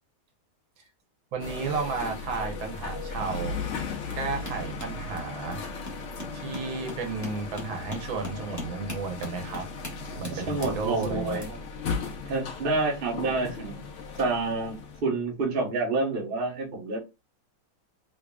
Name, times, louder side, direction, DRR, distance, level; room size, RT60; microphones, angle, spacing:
voice 1, 1.3-3.6 4.2-5.6 6.3-9.6 10.2-11.6, right 4 dB, 70° right, 1.7 m, -33 dB
sound 1, 1.4-15.0, left 4 dB, 65° left, 0.7 m, -37 dB
sound 2, 3.7-14.2 15.2-15.4 15.7-15.8, left 2 dB, 10° left, 0.9 m, -43 dB
voice 2, 10.3-11.5 12.2-13.8 14.2-17.0, right 3 dB, 40° right, 0.9 m, -28 dB
3.9 x 3.2 x 2.3 m
omnidirectional pair, 2.3 m